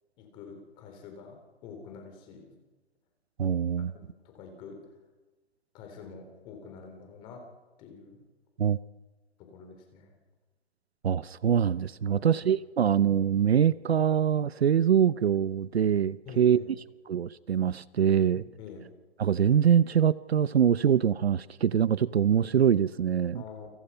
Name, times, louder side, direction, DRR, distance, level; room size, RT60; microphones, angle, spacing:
voice 1, 0.2-2.6 3.8-4.8 5.7-7.5 7.8-8.2 9.4-10.2 12.0-12.2 16.2-16.7 18.3-18.9 23.3-23.7, left 5 dB, 15° left, 4 dB, 3.8 m, -47 dB
voice 2, 3.4-3.9 8.6-8.8 11.0-16.6 17.1-18.4 19.2-23.4, right 8 dB, 65° right, 16 dB, 0.8 m, -24 dB
29.5 x 27.0 x 5.7 m, 1.2 s
hypercardioid pair, 175°, 35 cm